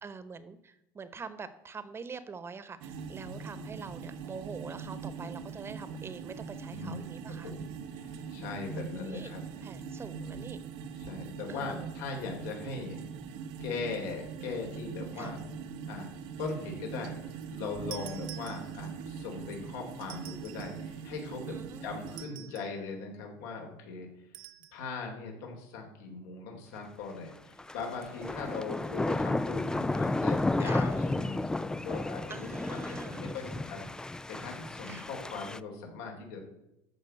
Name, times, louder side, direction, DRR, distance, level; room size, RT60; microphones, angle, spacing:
voice 1, 0.0-7.5 8.7-9.3 9.6-10.6 11.5-11.9 15.2-15.3 21.5-22.5 28.2-29.2 30.6-30.9 32.3-33.3 34.8-35.1, right 5 dB, 20° right, 13 dB, 1.1 m, -45 dB
sound 1, 2.8-22.3, right 6 dB, 70° right, 1.1 m, -42 dB
voice 2, 6.7-7.1 7.4-7.7 8.0-9.4 11.1-13.0 13.6-15.4 15.9-16.1 16.4-24.1 24.7-36.4, left 4 dB, 80° left, 1 dB, 3.8 m, -40 dB
sound 2, 17.9-19.1 20.0-20.9 22.1-22.8 24.3-24.8, right 16 dB, 90° right, 0.7 m, -48 dB
sound 3, 27.6-35.6, left 2 dB, 5° left, 0.3 m, -32 dB
13.5 x 5.2 x 7.7 m, 0.87 s
supercardioid pair, 130°, 11 cm